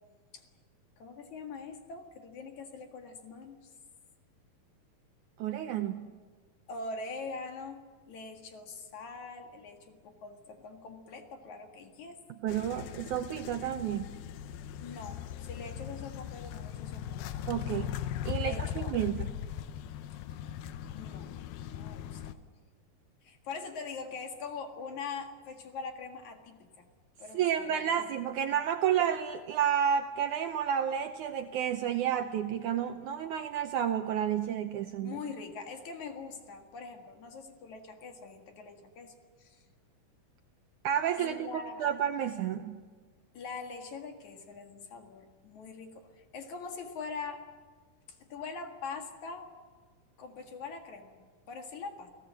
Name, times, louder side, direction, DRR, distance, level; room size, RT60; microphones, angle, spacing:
voice 1, 1.0-3.6 6.7-7.8 8.1-12.2 12.7-12.9 14.8-17.2 18.4-19.0 20.9-21.4 21.7-22.4 23.2-26.8 27.2-28.1 35.0-39.1 39.4-39.6 41.2-41.8 43.3-47.4 48.1-49.5 50.2-51.1 51.5-52.1, left 4 dB, 55° left, 4 dB, 3.0 m, -43 dB
voice 2, 5.4-6.0 12.4-14.1 17.5-18.0 18.3-19.3 27.3-35.2 40.8-42.8, right 9 dB, 75° right, 7 dB, 1.9 m, -31 dB
sound 1, 12.5-22.3, left 10 dB, 80° left, 2.6 m, -39 dB
29.5 x 17.0 x 7.5 m, 1.5 s
omnidirectional pair, 4.3 m